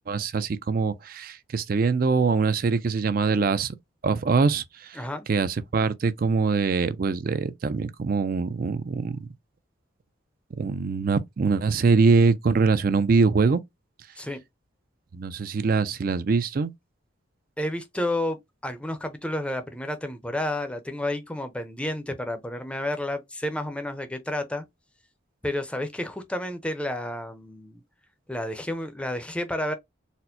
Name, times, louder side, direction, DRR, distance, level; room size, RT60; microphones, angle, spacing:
voice 1, 0.1-3.7 4.0-5.0 5.3-9.2 10.6-13.6 15.1-16.7, right 4 dB, 45° right, 0.4 m, -23 dB
voice 2, 17.6-24.7 25.4-27.8 28.3-29.7, left 1 dB, 5° left, 0.5 m, -31 dB
4.2 x 2.0 x 2.6 m
head